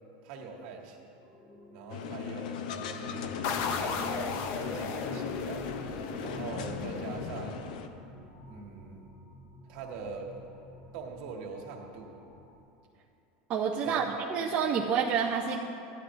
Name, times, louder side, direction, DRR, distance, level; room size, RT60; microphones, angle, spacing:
voice 1, 0.2-1.0 1.7-3.3 3.7-4.2 4.6-5.6 6.2-7.6 8.5-9.1 9.7-10.4 10.9-12.1 13.8-14.1, right 5 dB, 55° right, -1 dB, 1.5 m, -42 dB
sound 1, 1.2-12.6, left 2 dB, 30° left, 1.2 m, -49 dB
sound 2, 1.9-7.9, left 6 dB, 90° left, 0.7 m, -38 dB
sound 3, 3.4-8.0, left 5 dB, 45° left, 0.6 m, -36 dB
voice 2, 13.5-14.0 14.3-15.6, right 7 dB, 30° right, -3 dB, 0.6 m, -28 dB
15.0 x 11.0 x 2.6 m, 2.7 s
supercardioid pair, 170°, 4 cm